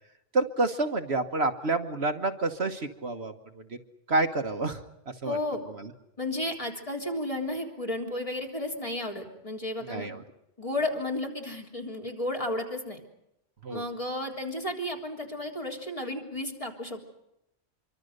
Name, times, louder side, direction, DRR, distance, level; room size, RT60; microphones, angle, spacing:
voice 1, 0.3-3.8 4.1-4.8 5.2-5.4 5.8-5.9 9.8-10.2 13.6-13.8, right 2 dB, 60° right, 7 dB, 1.6 m, -29 dB
voice 2, 5.2-5.6 6.2-10.1 10.6-13.0 13.7-17.0, left 1 dB, 25° left, 1 dB, 3.7 m, -33 dB
25.5 x 24.5 x 6.7 m, 0.85 s
omnidirectional pair, 1.3 m